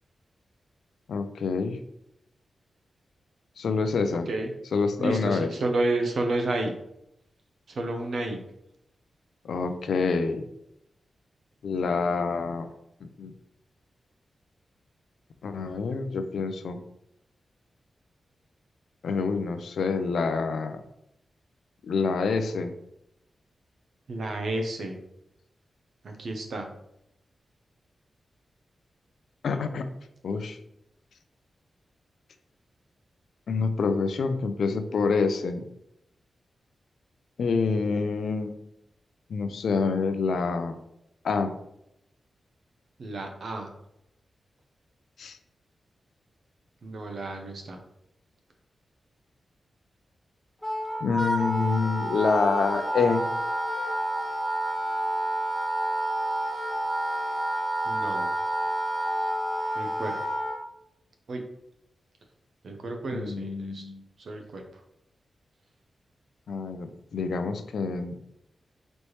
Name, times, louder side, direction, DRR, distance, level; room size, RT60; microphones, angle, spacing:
voice 1, 1.1-1.8 3.6-4.3 4.7-5.5 9.4-10.5 11.6-12.7 13.0-13.3 15.4-16.8 19.0-20.8 21.8-22.7 29.4-29.9 30.2-30.6 33.5-35.6 37.4-38.6 39.3-40.8 41.2-41.5 45.2-45.4 51.0-53.2 63.1-64.0 66.5-68.3, left 4 dB, 80° left, 8 dB, 0.4 m, -27 dB
voice 2, 5.0-6.7 7.7-8.4 24.1-25.0 26.0-26.7 43.0-43.7 46.8-47.8 57.8-58.3 59.7-60.3 61.3-61.4 62.6-63.8 64.2-64.8, right 2 dB, 70° right, 4 dB, 0.7 m, -31 dB
Wind instrument woodwind instrument, 50.6-60.6, right 1 dB, 10° left, 1.3 m, -29 dB
4.1 x 3.3 x 3.0 m, 0.80 s
cardioid pair, 70°, 0 cm